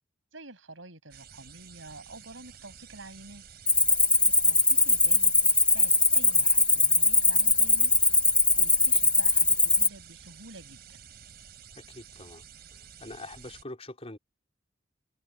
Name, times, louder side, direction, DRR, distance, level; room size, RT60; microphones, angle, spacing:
voice 1, 0.3-3.4 4.4-7.9 8.6-11.1, right 2 dB, 90° right, 7.7 m, -48 dB
sound 1, 1.1-13.6, right 7 dB, 55° right, 6.1 m, -51 dB
Cricket, 3.7-9.9, left 2 dB, 5° left, 0.4 m, -21 dB
voice 2, 11.7-12.4 12.7-14.2, left 2 dB, 30° left, 4.2 m, -44 dB
head